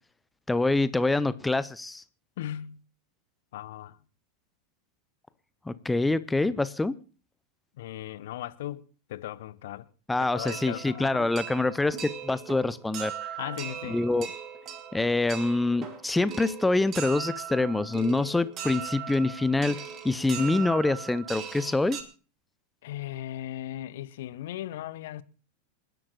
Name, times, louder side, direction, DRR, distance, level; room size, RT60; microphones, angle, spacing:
voice 1, 0.5-2.0 5.7-6.9 10.1-13.1 13.9-14.3 14.9-19.8 20.0-22.0, left 2 dB, 5° left, 0.6 m, -25 dB
voice 2, 2.4-2.8 3.5-4.0 7.8-8.8 9.1-9.9 10.2-11.3 13.4-14.0 22.8-25.2, left 13 dB, 55° left, 0.7 m, -37 dB
sound 1, 10.4-22.0, right 8 dB, 30° right, 2.4 m, -39 dB
28.0 x 11.0 x 2.4 m
figure-of-eight pair, 90°, 0 cm